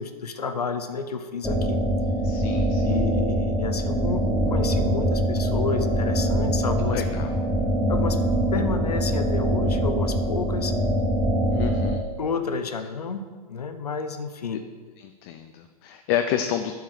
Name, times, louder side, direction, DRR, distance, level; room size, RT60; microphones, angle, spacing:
voice 1, 0.0-1.8 2.8-7.0 7.9-8.2 8.5-10.7 12.2-14.6, left 4 dB, 80° left, 8 dB, 0.8 m, -30 dB
sound 1, 1.4-12.0, equal, ahead, 0.7 m, -23 dB
voice 2, 2.2-3.0 6.9-7.3 11.5-12.0 15.0-16.7, left 10 dB, 40° left, 6 dB, 0.6 m, -29 dB
8.7 x 4.8 x 6.5 m, 1.5 s
figure-of-eight pair, 110°, 20 cm